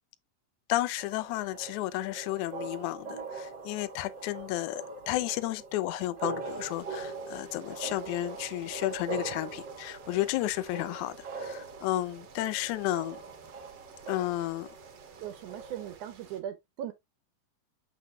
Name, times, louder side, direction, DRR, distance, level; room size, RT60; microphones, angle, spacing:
voice 1, 0.7-13.2 14.1-14.7, left 15 dB, 75° left, 1.8 m, -32 dB
sound 1, 1.0-16.0, right 4 dB, 40° right, 1.8 m, -42 dB
sound 2, 6.5-16.4, right 6 dB, 60° right, 1.7 m, -55 dB
voice 2, 15.2-16.9, right 10 dB, 75° right, 2.0 m, -39 dB
7.6 x 5.5 x 2.3 m
omnidirectional pair, 4.0 m